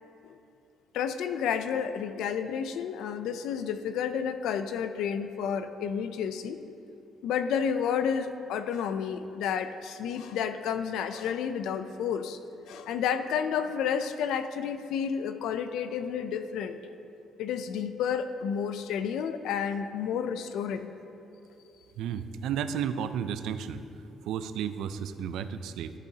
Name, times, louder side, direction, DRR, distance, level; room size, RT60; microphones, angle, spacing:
voice 1, 0.9-6.6 7.2-12.4 12.7-16.8 17.4-20.9, left 7 dB, 90° left, 10 dB, 0.4 m, -31 dB
voice 2, 22.0-23.8 24.2-25.9, right 8 dB, 85° right, 11 dB, 0.4 m, -33 dB
14.0 x 8.2 x 2.8 m, 2.9 s
cardioid pair, 140°, 0 cm